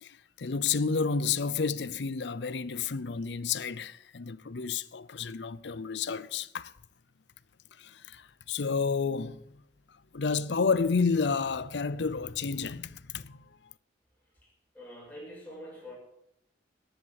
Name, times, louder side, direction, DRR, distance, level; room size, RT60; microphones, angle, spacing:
voice 1, 0.0-6.7 7.8-9.4 10.1-13.4, left 5 dB, 65° left, 0.6 m, -30 dB
voice 2, 14.7-15.9, equal, 10° left, 7.1 m, -45 dB
11.0 x 10.5 x 7.7 m
head